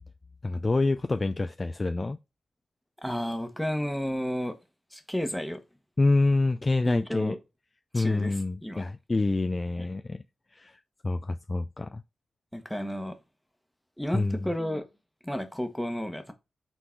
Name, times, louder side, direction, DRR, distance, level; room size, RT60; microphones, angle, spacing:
voice 1, 0.4-2.2 6.0-7.4 7.9-10.2 10.5-12.0 14.1-14.5, left 2 dB, 25° left, 0.3 m, -27 dB
voice 2, 3.0-4.6 4.9-5.6 6.9-7.4 7.9-8.8 9.8-9.9 12.5-13.2 14.0-14.9 15.2-16.3, equal, ahead, 1.1 m, -32 dB
6.1 x 3.8 x 4.5 m
wide cardioid pair, 110°, 0 cm